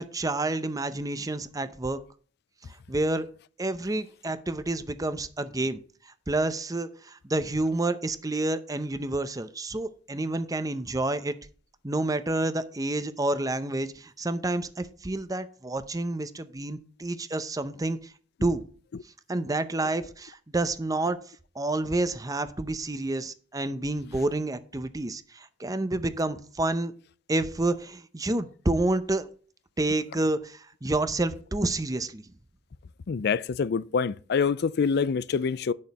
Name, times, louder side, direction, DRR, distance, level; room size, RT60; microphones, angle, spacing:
voice 1, 0.0-2.0 2.9-3.3 3.6-5.8 6.3-11.4 11.8-18.1 18.4-18.6 19.3-21.2 21.5-26.9 27.3-29.3 29.8-32.2, right 2 dB, 20° right, 0.7 m, -29 dB
voice 2, 33.1-35.7, left 5 dB, 60° left, 0.4 m, -26 dB
10.0 x 6.6 x 4.2 m
head